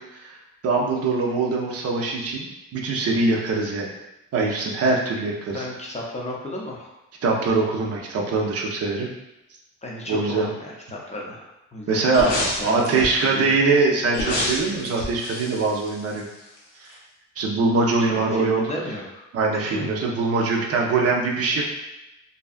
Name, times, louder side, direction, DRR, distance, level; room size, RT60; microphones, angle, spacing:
voice 1, 0.6-3.9 4.3-5.6 7.2-9.1 10.1-10.5 11.9-16.3 16.8-16.9 17.4-18.6 19.3-21.6, right 3 dB, 55° right, -1 dB, 0.5 m, -22 dB
voice 2, 5.5-6.9 9.8-12.3 12.6-13.6 18.0-19.3 19.7-19.9, left 1 dB, 20° left, -3 dB, 0.5 m, -34 dB
sound 1, 12.1-13.3 14.1-16.6 16.9-17.0, left 2 dB, 90° left, 0.7 m, -29 dB
2.6 x 2.2 x 2.4 m, 0.94 s
cardioid pair, 90°, 30 cm